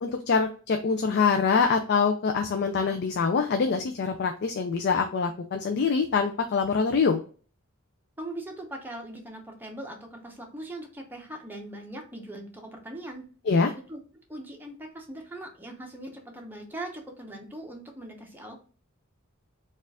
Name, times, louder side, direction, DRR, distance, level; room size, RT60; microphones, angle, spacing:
voice 1, 0.0-7.2 13.5-13.7, left 5 dB, 50° left, 5 dB, 0.4 m, -24 dB
voice 2, 8.2-13.2 13.5-14.0 14.3-18.6, right 1 dB, 10° right, 2 dB, 0.7 m, -40 dB
4.4 x 2.4 x 3.4 m, 0.39 s
head